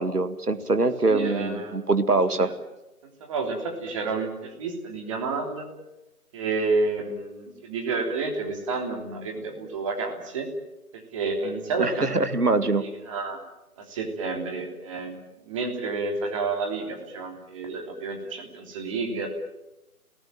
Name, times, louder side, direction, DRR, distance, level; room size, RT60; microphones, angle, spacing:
voice 1, 0.0-2.5 11.8-12.9, right 3 dB, 90° right, 11 dB, 2.0 m, -23 dB
voice 2, 1.1-1.8 2.4-2.5 3.2-5.7 6.3-10.5 10.9-12.1 12.8-13.4 13.8-15.1 15.4-19.3, right 3 dB, 20° right, 3 dB, 3.2 m, -30 dB
29.0 x 18.5 x 9.1 m, 0.98 s
figure-of-eight pair, 155°, 45 cm